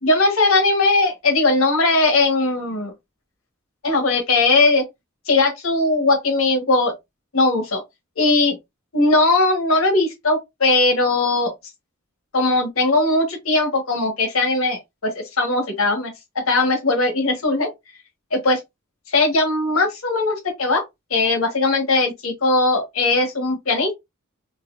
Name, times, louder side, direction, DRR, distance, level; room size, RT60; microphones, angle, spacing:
voice 1, 0.0-2.9 3.8-4.8 5.3-6.9 7.3-7.8 8.2-8.5 8.9-11.5 12.3-16.1 16.5-17.7 18.3-18.6 19.1-20.8 21.1-23.9, left 2 dB, 80° left, 1.3 m, -19 dB
4.0 x 2.7 x 2.5 m
head